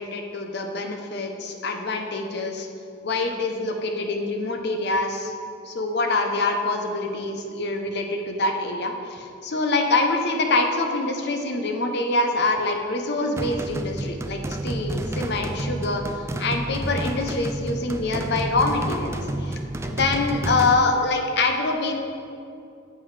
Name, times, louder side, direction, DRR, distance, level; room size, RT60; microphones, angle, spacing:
voice 1, 0.0-2.7 3.0-5.3 5.7-16.0 16.4-21.9, left 2 dB, 60° left, 4 dB, 0.8 m, -25 dB
sound 1, 13.4-20.7, right 1 dB, 15° right, 0.3 m, -30 dB
9.3 x 7.8 x 3.3 m, 2.6 s
head